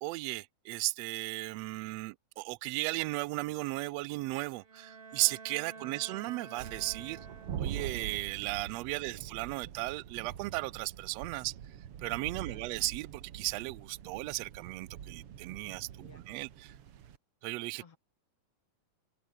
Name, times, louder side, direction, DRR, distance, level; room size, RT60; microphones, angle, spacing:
voice 1, 0.0-7.2 7.6-11.5 12.0-15.9 16.3-16.7 17.4-17.8, right 22 dB, 85° right, 1.5 m, -35 dB
Bowed string instrument, 4.6-8.0, right 4 dB, 35° right, 0.9 m, -50 dB
sound 1, 6.6-17.2, right 9 dB, 55° right, 2.1 m, -44 dB
voice 2, 8.8-9.3 12.3-12.7 16.0-16.2 17.8-18.0, left 6 dB, 50° left, 3.3 m, -58 dB
omnidirectional pair, 3.5 m